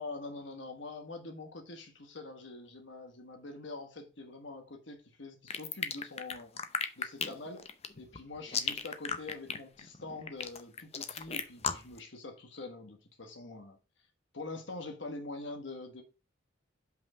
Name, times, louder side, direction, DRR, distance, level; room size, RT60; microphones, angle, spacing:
voice 1, 0.0-7.6 8.0-13.8 14.3-16.0, left 3 dB, 70° left, 1.4 m, -44 dB
sound 1, 5.5-12.0, left 6 dB, 35° left, 0.6 m, -35 dB
5.6 x 5.3 x 4.8 m
head